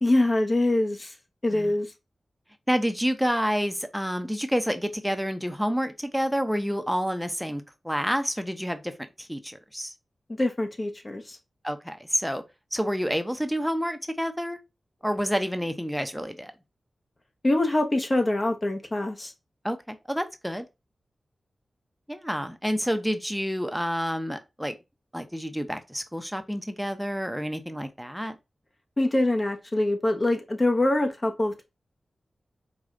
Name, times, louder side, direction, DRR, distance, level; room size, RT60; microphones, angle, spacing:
voice 1, 0.0-1.1 1.4-1.9 10.3-11.4 17.4-19.3 29.0-31.6, left 1 dB, 40° left, 1.0 m, -24 dB
voice 2, 2.7-8.9 9.2-9.9 11.6-12.4 12.7-14.6 15.0-16.5 19.6-20.7 22.1-24.7 25.1-28.3, equal, ahead, 0.7 m, -28 dB
4.9 x 2.3 x 3.8 m
cardioid pair, 40°, 0 cm